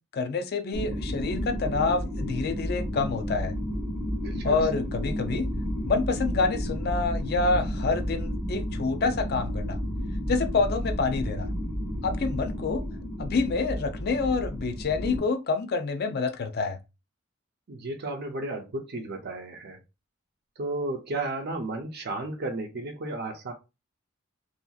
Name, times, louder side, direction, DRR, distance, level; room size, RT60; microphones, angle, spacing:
voice 1, 0.0-3.6 4.4-5.5 5.8-9.8 10.3-11.5 12.0-12.8 13.2-16.8, left 4 dB, 50° left, 0.4 m, -27 dB
sound 1, 0.7-15.2, equal, 15° right, 1.4 m, -31 dB
voice 2, 4.2-4.6 17.7-19.8 20.6-23.5, right 2 dB, 55° right, 0.6 m, -33 dB
2.8 x 2.7 x 2.3 m
head